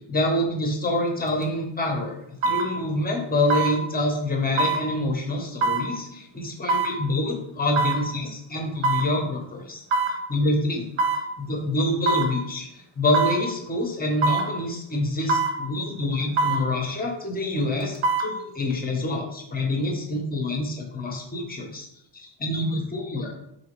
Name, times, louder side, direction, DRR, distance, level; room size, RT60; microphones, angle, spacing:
voice 1, 0.1-2.2 2.4-9.8 10.3-10.9 11.4-21.9 22.1-23.3, left 1 dB, 20° left, 1 dB, 0.6 m, -26 dB
sound 1, 1.3-1.4 2.4-2.7 3.5-3.7 4.6-4.8 5.6-5.9 6.7-6.9 7.8-8.0 8.8-9.1 9.9-10.2 11.0-11.2 12.1-12.3 13.1-13.4 14.2-14.5 15.3-15.6 16.4-16.6 17.8-18.3 18.7-18.8, right 3 dB, 80° right, 0.8 m, -23 dB
3.9 x 2.8 x 2.9 m, 0.77 s
wide cardioid pair, 155°, 49 cm